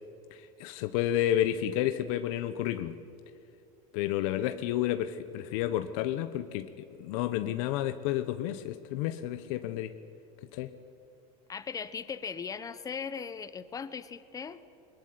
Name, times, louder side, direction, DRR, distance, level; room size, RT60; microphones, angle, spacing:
voice 1, 0.3-3.0 3.9-9.9 10.5-10.7, left 12 dB, 65° left, 10 dB, 1.0 m, -31 dB
voice 2, 11.5-14.6, left 6 dB, 20° left, 14 dB, 1.0 m, -38 dB
21.5 x 21.0 x 9.8 m, 2.7 s
supercardioid pair, 145°, 19 cm